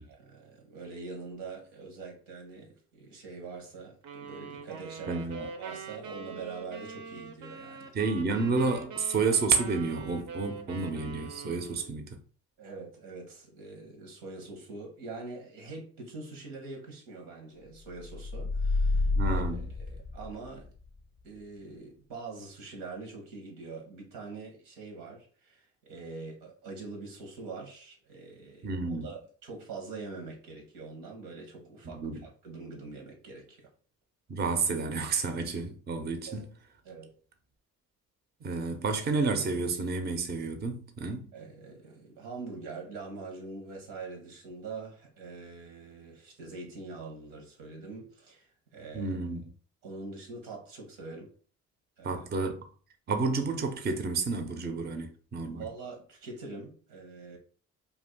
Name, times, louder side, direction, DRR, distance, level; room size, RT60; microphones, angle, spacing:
voice 1, 0.0-7.9 12.6-19.6 19.9-20.7 21.2-33.7 36.3-36.5 36.8-37.2 41.3-49.3 49.8-51.3 52.0-52.3 55.5-57.4, right 3 dB, 90° right, 1.0 m, -44 dB
sound 1, 4.0-12.0, right 5 dB, 65° right, 0.7 m, -43 dB
voice 2, 5.1-5.4 7.9-12.2 19.2-19.7 28.6-29.1 31.9-32.2 34.3-36.4 38.4-41.3 48.9-49.5 52.0-52.6 53.1-55.7, right 4 dB, 30° right, 0.6 m, -30 dB
sound 2, 18.0-20.7, left 3 dB, 35° left, 0.4 m, -29 dB
2.6 x 2.4 x 3.5 m
supercardioid pair, 70°, 33 cm